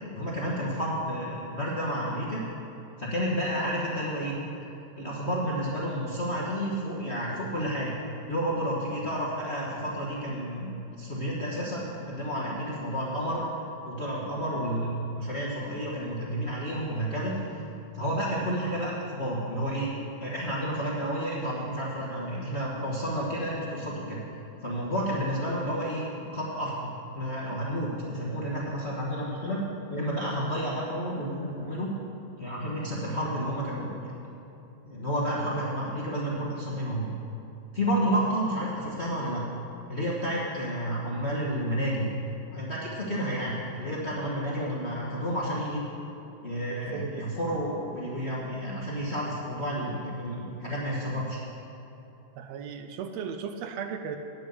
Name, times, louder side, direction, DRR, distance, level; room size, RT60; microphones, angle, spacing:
voice 1, 0.1-2.4 3.0-4.3 5.0-8.0 8.3-13.5 13.8-17.7 17.9-19.9 20.2-24.2 24.6-26.9 27.1-29.6 29.9-31.9 32.4-34.1 34.8-37.1 37.7-39.4 39.9-42.1 42.5-45.8 46.4-51.4, equal, 50° left, -6 dB, 0.7 m, -31 dB
voice 2, 46.9-47.2 52.4-54.2, right 7 dB, 80° right, 7 dB, 1.6 m, -36 dB
9.3 x 7.8 x 7.9 m, 2.8 s
omnidirectional pair, 3.3 m